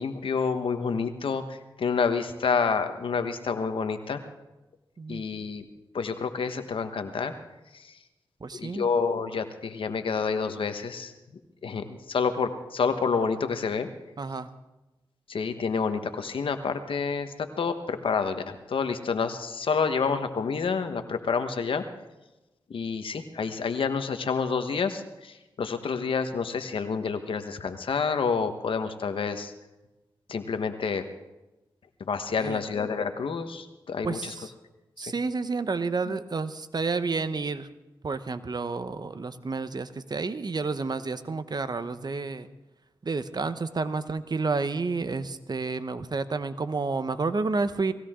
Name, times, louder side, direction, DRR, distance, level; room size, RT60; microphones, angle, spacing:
voice 1, 0.0-4.2 5.1-5.6 5.9-7.3 7.7-7.9 8.5-11.1 11.6-13.9 15.3-21.8 22.7-29.5 30.3-31.0 32.1-34.3 35.0-35.1 36.1-36.2, left 5 dB, 80° left, 8 dB, 1.3 m, -28 dB
voice 2, 8.4-8.9 14.2-14.5 32.3-32.6 34.0-34.5 35.0-37.7 38.0-42.5 43.0-47.9, right 4 dB, 50° right, 12 dB, 0.9 m, -30 dB
19.5 x 16.5 x 3.7 m, 1.0 s
cardioid pair, 55°, 9 cm